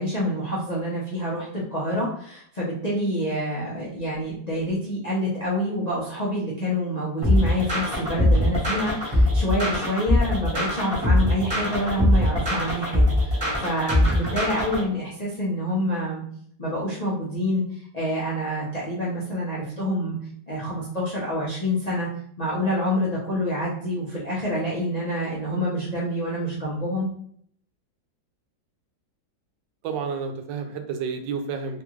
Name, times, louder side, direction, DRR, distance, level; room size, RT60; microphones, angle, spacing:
voice 1, 0.0-16.2 16.6-20.2 20.5-22.1 22.4-27.1, equal, 60° left, -8 dB, 0.4 m, -27 dB
sound 1, 7.2-14.8, left 1 dB, 15° right, 1.0 m, -22 dB
voice 2, 29.8-31.8, right 5 dB, 90° right, 6 dB, 1.3 m, -30 dB
3.3 x 2.4 x 3.1 m, 0.64 s
omnidirectional pair, 1.9 m